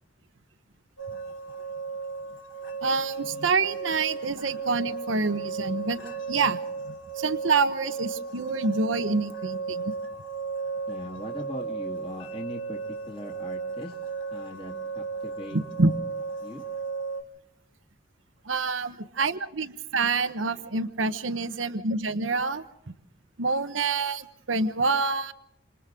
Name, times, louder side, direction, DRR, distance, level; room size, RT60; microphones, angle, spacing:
sound 1, 1.0-17.2, right 4 dB, 85° left, 2.5 m, -35 dB
voice 1, 2.8-6.0 6.3-6.6 6.9-9.9 15.5-15.9 18.4-22.6 23.4-25.3, right 4 dB, 85° right, 10 dB, 1.1 m, -27 dB
voice 2, 10.9-12.8 13.1-14.0 14.3-15.6 16.4-16.6, equal, 30° left, 0 dB, 2.1 m, -39 dB
28.0 x 27.5 x 3.8 m, 0.77 s
head